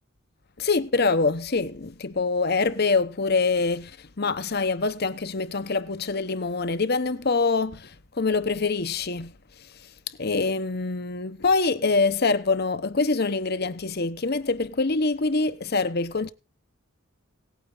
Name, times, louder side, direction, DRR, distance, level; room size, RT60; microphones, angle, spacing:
voice 1, 0.6-9.3 10.2-16.3, left 3 dB, 50° left, 0.9 m, -25 dB
18.0 x 9.2 x 4.0 m
head